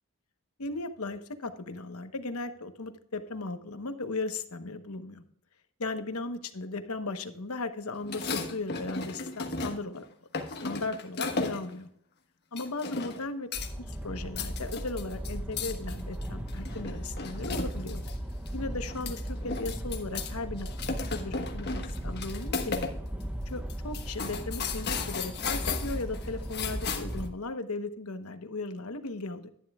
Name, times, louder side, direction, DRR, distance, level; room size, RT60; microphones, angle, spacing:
voice 1, 0.6-5.2 5.8-10.0 10.6-11.9 12.5-13.5 14.0-18.0 18.5-19.2 19.4-20.7 21.1-22.9 23.5-29.5, left 3 dB, 85° left, 9 dB, 1.0 m, -36 dB
sound 1, 8.0-10.0 10.3-11.8 12.6-13.2 13.5-13.9 14.2-18.1 18.5-18.6 18.9-20.3 20.6-22.9 23.2-23.3 23.7-27.3, left 4 dB, 50° left, 1.3 m, -35 dB
sound 2, 13.5-27.3, equal, 5° right, 0.7 m, -37 dB
12.0 x 11.0 x 2.3 m, 0.68 s
head